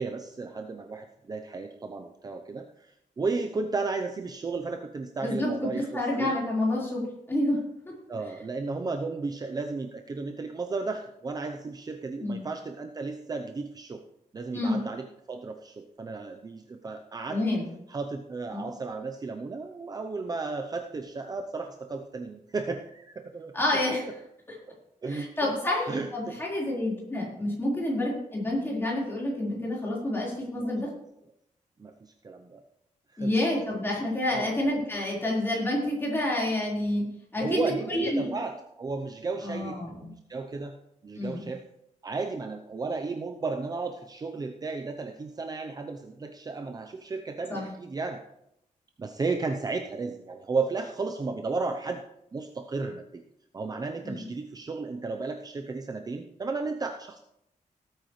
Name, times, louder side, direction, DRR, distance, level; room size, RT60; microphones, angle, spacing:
voice 1, 0.0-6.4 8.1-14.0 14.3-17.4 17.9-23.5 25.0-25.5 25.9-26.4 30.5-30.7 31.8-32.6 33.1-33.3 34.3-34.5 37.4-40.7 41.0-41.6 42.0-48.2 49.0-52.0 52.3-53.2 53.5-57.2, right 4 dB, 30° right, 5 dB, 0.7 m, -34 dB
voice 2, 5.2-7.6 7.9-8.0 12.2-12.4 14.5-14.8 17.3-17.7 18.5-18.7 23.5-24.0 25.1-30.9 33.2-37.0 37.3-38.3 39.4-40.0 41.2-41.4 47.5-47.7 54.0-54.2, left 1 dB, 15° left, -5 dB, 4.3 m, -28 dB
18.0 x 9.0 x 3.2 m, 0.80 s
wide cardioid pair, 165°, 14 cm